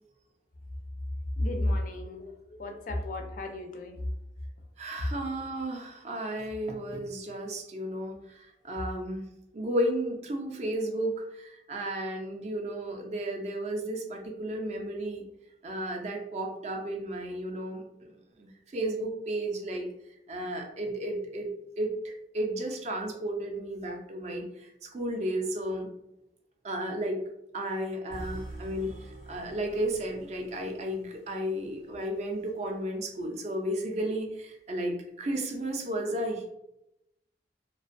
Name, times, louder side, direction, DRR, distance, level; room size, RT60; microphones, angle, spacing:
voice 1, 1.4-4.0, left 1 dB, 45° left, 4 dB, 0.3 m, -32 dB
voice 2, 4.8-9.3 9.5-15.2 15.6-18.1 18.4-19.9 20.3-21.5 21.8-24.4 24.8-25.9 26.6-27.2 27.5-28.9 29.3-36.5, right 1 dB, 40° right, 3 dB, 0.4 m, -33 dB
sound 1, 28.1-32.2, right 2 dB, 80° right, 0.7 m, -45 dB
2.4 x 2.2 x 2.5 m, 0.85 s
head